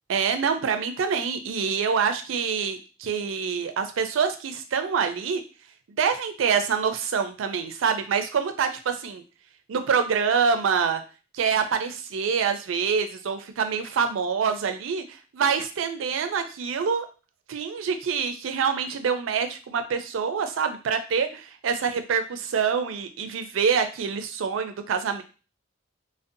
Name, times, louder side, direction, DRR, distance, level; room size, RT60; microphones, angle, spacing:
voice 1, 0.1-5.4 6.0-9.2 9.7-11.0 11.3-17.1 17.5-25.2, right 6 dB, 75° right, 8 dB, 0.4 m, -26 dB
2.6 x 2.1 x 2.5 m, 0.34 s
head